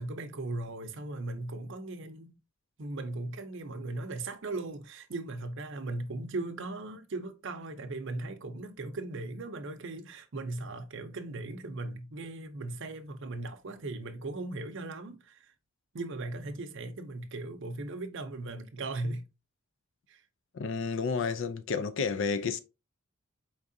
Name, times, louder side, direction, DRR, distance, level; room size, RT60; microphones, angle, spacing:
voice 1, 0.0-2.4 2.8-15.5 15.9-19.2 20.1-20.2, right 2 dB, 60° right, 0.6 m, -38 dB
voice 2, 20.5-22.6, left 5 dB, 60° left, 0.4 m, -31 dB
4.6 x 3.6 x 2.6 m
head